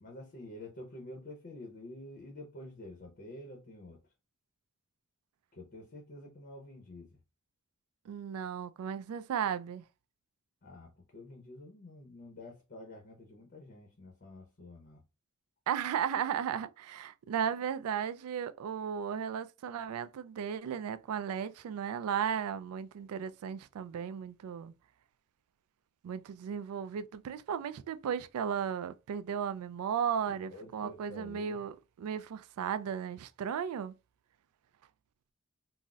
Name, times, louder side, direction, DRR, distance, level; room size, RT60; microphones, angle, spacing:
voice 1, 0.0-4.0 5.5-7.2 10.6-15.0 30.3-31.6, left 1 dB, 45° left, 0.7 m, -49 dB
voice 2, 8.1-9.8 15.7-24.7 26.0-31.7 32.0-33.9, right 8 dB, 75° right, 0.3 m, -35 dB
3.9 x 2.0 x 2.3 m
head